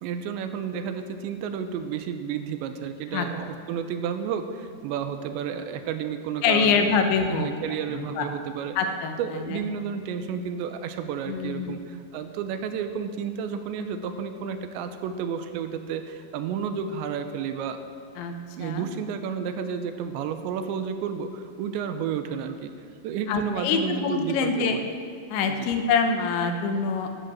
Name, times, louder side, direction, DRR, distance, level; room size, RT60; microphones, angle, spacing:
voice 1, 0.0-7.0 7.3-8.8 9.2-17.8 18.6-22.7 23.0-24.9 25.5-25.7, right 7 dB, 80° right, 8 dB, 3.0 m, -31 dB
voice 2, 6.4-7.5 7.9-8.3 8.8-9.6 11.3-11.8 18.2-18.3 18.6-18.9 23.3-24.8 25.3-27.2, left 5 dB, 80° left, 5 dB, 3.4 m, -25 dB
13.0 x 10.5 x 7.6 m, 2.2 s
omnidirectional pair, 5.2 m